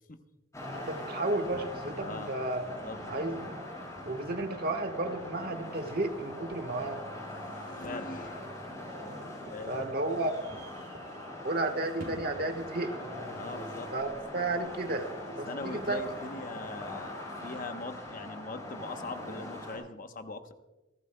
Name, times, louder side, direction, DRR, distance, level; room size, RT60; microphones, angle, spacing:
sound 1, 0.5-19.8, left 1 dB, 15° left, 5.7 m, -42 dB
voice 1, 0.7-2.6 3.1-3.6 4.0-7.0 9.1-9.2 9.6-10.3 11.4-12.9 13.9-15.1 15.4-16.0, right 2 dB, 50° right, 6 dB, 1.3 m, -32 dB
voice 2, 1.9-2.3 2.6-3.0 7.3-8.5 9.5-9.9 13.3-13.9 15.5-20.5, left 3 dB, 45° left, 7 dB, 0.9 m, -41 dB
sound 2, 9.6-14.7, right 1 dB, 90° right, 3.0 m, -52 dB
27.5 x 12.5 x 2.2 m, 1.1 s
head